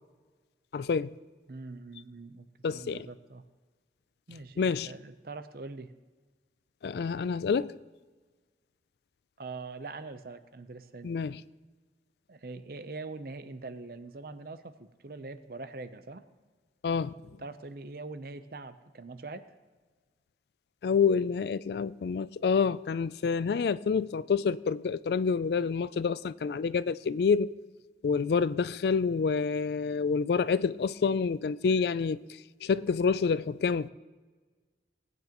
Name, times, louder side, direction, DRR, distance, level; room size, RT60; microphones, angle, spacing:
voice 1, 0.7-1.1 2.6-3.1 4.6-4.9 6.8-7.7 11.0-11.4 16.8-17.1 20.8-27.5 28.0-32.3 32.6-33.9, left 5 dB, 65° left, 0.3 m, -28 dB
voice 2, 1.5-3.4 4.3-5.9 9.4-11.1 12.3-16.2 17.4-19.5, right 3 dB, 55° right, 0.6 m, -43 dB
19.0 x 9.3 x 3.0 m
head